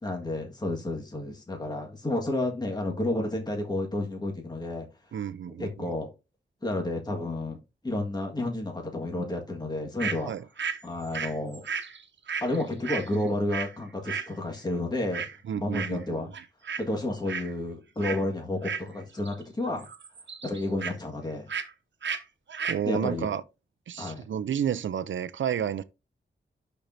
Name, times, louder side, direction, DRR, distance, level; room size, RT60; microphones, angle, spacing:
voice 1, 0.0-4.9 5.6-6.1 6.6-7.6 7.8-10.3 10.8-11.6 12.4-15.2 15.5-16.3 16.8-19.9 20.4-21.5 22.8-23.3 24.0-24.2, left 1 dB, 20° left, 1.7 m, -31 dB
voice 2, 5.1-5.9 10.3-10.4 15.5-16.3 22.6-23.4 23.9-25.8, right 8 dB, 90° right, 0.5 m, -31 dB
sound 1, 10.0-10.2 10.6-13.7 14.0-14.3 15.1-15.4 15.7-16.1 16.3-16.8 17.1-17.5 18.0-18.2 18.6-19.4 19.7-20.9 21.5-21.7 22.0-22.2 22.5-22.8, right 6 dB, 70° right, 1.1 m, -34 dB
11.5 x 4.5 x 2.6 m
wide cardioid pair, 140°, 19 cm